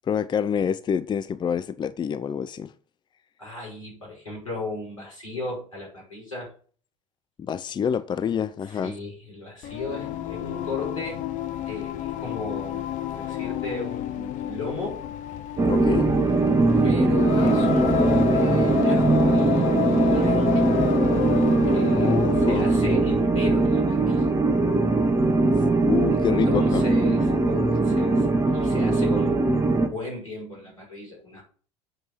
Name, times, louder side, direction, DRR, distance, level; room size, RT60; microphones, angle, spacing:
voice 1, 0.1-2.7 7.4-8.9 15.7-16.1 22.0-22.7 25.9-26.8, left 7 dB, 25° left, 0.6 m, -27 dB
voice 2, 3.4-6.5 8.7-11.3 11.7-12.9 13.1-15.0 16.8-20.8 21.7-24.3 26.1-28.3 28.5-29.5 29.9-31.4, left 3 dB, 90° left, 5.5 m, -35 dB
Singing, 9.6-22.8, left 11 dB, 50° left, 1.0 m, -30 dB
sound 1, 15.6-29.9, right 2 dB, 20° right, 1.7 m, -21 dB
8.1 x 5.5 x 7.3 m
figure-of-eight pair, 70°, 17 cm